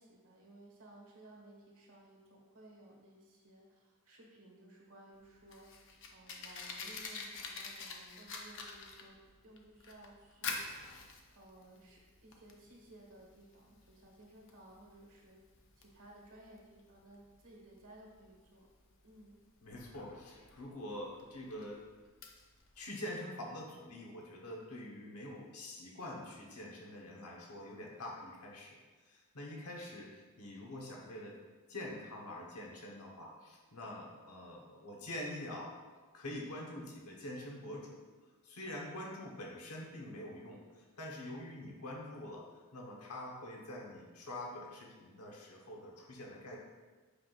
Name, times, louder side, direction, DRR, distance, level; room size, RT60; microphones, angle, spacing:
voice 1, 0.0-9.2 9.4-10.6 11.3-15.4 15.8-18.7 19.0-19.4, right 1 dB, 70° right, -2 dB, 1.6 m, -58 dB
Fire, 5.1-22.8, left 4 dB, 60° left, 0.8 m, -48 dB
voice 2, 19.6-21.8 22.8-28.8 29.1-31.4 31.7-35.7 36.1-38.0 38.4-46.6, left 1 dB, 75° left, -2 dB, 1.2 m, -45 dB
8.4 x 5.7 x 2.5 m, 1.4 s
head